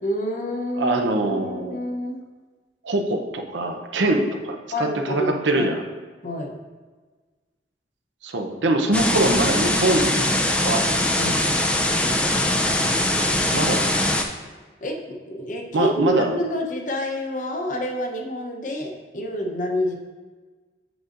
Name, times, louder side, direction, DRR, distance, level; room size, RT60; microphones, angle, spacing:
voice 1, 0.0-1.0 1.3-2.2 4.7-5.7 6.2-6.5 11.2-11.5 14.8-20.0, left 1 dB, 45° left, 2 dB, 0.8 m, -28 dB
voice 2, 0.7-1.8 2.8-5.8 8.2-10.1 10.6-10.9 13.5-14.1 15.7-16.3, right 2 dB, 85° right, 4 dB, 0.7 m, -23 dB
sound 1, 8.9-14.2, left 1 dB, 5° left, 0.4 m, -21 dB
8.0 x 6.2 x 2.5 m, 1.4 s
head